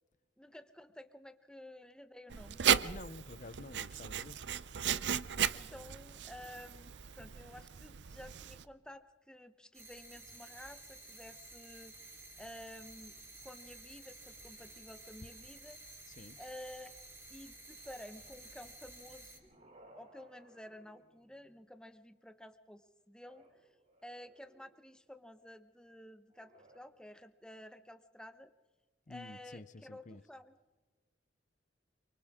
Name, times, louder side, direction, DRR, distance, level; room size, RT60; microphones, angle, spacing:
voice 1, 0.4-2.6 5.3-12.0 12.4-13.1 13.4-15.8 16.4-17.0 17.3-19.5 19.9-23.7 24.0-28.5 29.1-30.5, left 1 dB, 5° left, 1.0 m, -52 dB
Writing, 2.3-8.6, right 8 dB, 70° right, 0.6 m, -35 dB
voice 2, 2.8-4.4 16.1-16.4 29.1-30.2, left 2 dB, 45° left, 0.7 m, -50 dB
sound 1, 9.7-19.4, right 2 dB, 15° right, 3.8 m, -53 dB
sound 2, 19.0-21.6 23.1-24.9 26.3-26.8, right 1 dB, 45° right, 5.0 m, -62 dB
28.5 x 25.0 x 3.7 m
head